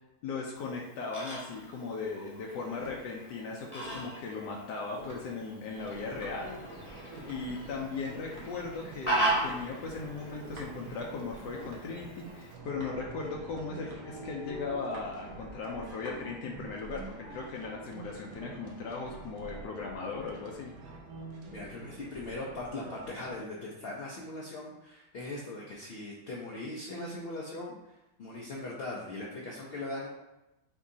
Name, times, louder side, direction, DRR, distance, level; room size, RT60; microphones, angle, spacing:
voice 1, 0.2-6.6 7.2-20.7, left 4 dB, 80° left, -1 dB, 1.3 m, -38 dB
Fowl, 0.6-12.5, right 1 dB, 20° left, 0.9 m, -38 dB
sound 1, 1.7-16.9, right 1 dB, 35° right, 1.0 m, -51 dB
sound 2, 5.7-23.4, right 3 dB, 80° right, 1.3 m, -47 dB
voice 2, 21.5-30.1, left 2 dB, 65° left, -4 dB, 0.6 m, -40 dB
5.9 x 2.8 x 2.7 m, 0.94 s
omnidirectional pair, 1.8 m